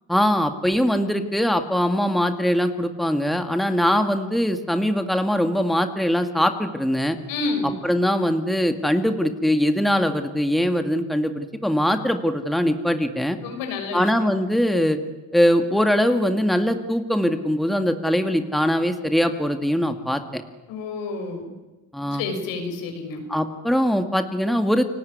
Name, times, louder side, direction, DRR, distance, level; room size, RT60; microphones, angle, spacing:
voice 1, 0.1-7.2 7.8-13.4 13.9-15.0 15.3-20.4 21.9-22.2 23.3-24.8, equal, ahead, 7 dB, 2.1 m, -22 dB
voice 2, 7.3-7.7 13.4-14.3 20.7-21.5 22.1-23.2, left 3 dB, 80° left, 5 dB, 6.5 m, -29 dB
30.0 x 18.5 x 9.6 m, 1.1 s
supercardioid pair, 90°, 33 cm